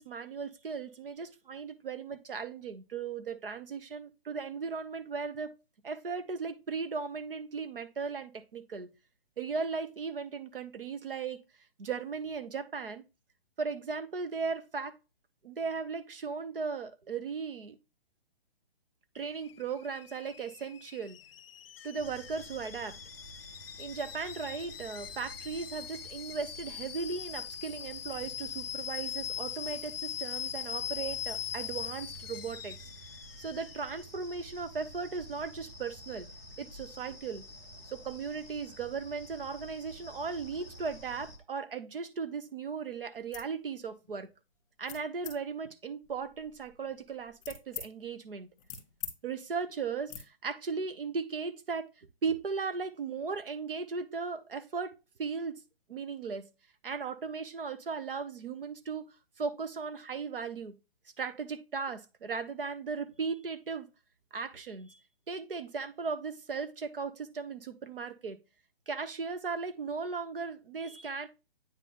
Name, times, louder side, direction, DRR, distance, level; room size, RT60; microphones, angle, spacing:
voice 1, 0.0-5.5 5.8-8.9 9.4-11.4 11.8-13.0 13.6-15.0 15.4-17.8 19.1-21.2 21.8-23.0 23.8-32.8 33.4-36.3 36.6-37.4 37.9-44.3 44.8-48.5 49.2-55.6 55.9-56.4 56.8-59.1 59.4-60.7 61.2-63.9 64.3-65.0 65.3-68.4 68.9-71.3, right 5 dB, 70° right, 1.0 m, -37 dB
Alarm / Boiling, 19.2-34.0, left 10 dB, 75° left, 0.4 m, -41 dB
sound 1, 22.0-41.4, equal, 10° right, 0.7 m, -50 dB
sound 2, 43.2-43.5 44.0-44.3 44.9-45.4 46.0-47.9 48.3-49.2 49.4-49.6 50.1-50.2, left 8 dB, 20° left, 1.9 m, -44 dB
9.0 x 3.9 x 3.5 m
hypercardioid pair, 175°, 29 cm